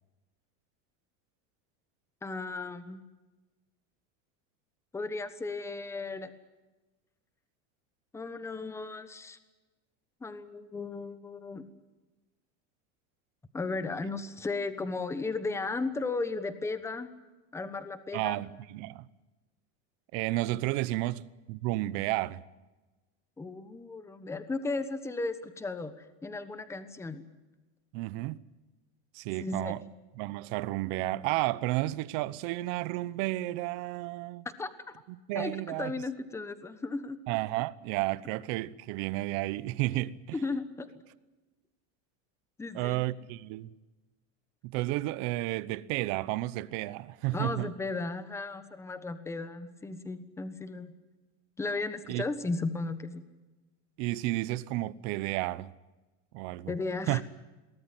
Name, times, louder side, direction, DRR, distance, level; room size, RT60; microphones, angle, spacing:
voice 1, 2.2-3.0 4.9-6.3 8.1-9.4 10.2-11.6 13.5-17.1 17.5-18.4 23.4-25.9 26.2-27.2 29.4-29.8 34.4-34.9 35.3-37.2 40.3-40.9 42.6-43.0 47.3-50.9 51.6-53.2 56.7-57.2, left 3 dB, 5° left, 1.2 m, -35 dB
voice 2, 18.1-19.1 20.1-22.4 27.9-28.4 29.1-29.8 30.2-34.5 35.3-35.9 37.3-40.1 42.7-43.7 44.6-47.7 52.1-52.2 54.0-55.7 56.3-56.7 57.1-57.2, right 18 dB, 50° right, 1.0 m, -32 dB
23.0 x 18.0 x 9.1 m
cardioid pair, 170°, 38 cm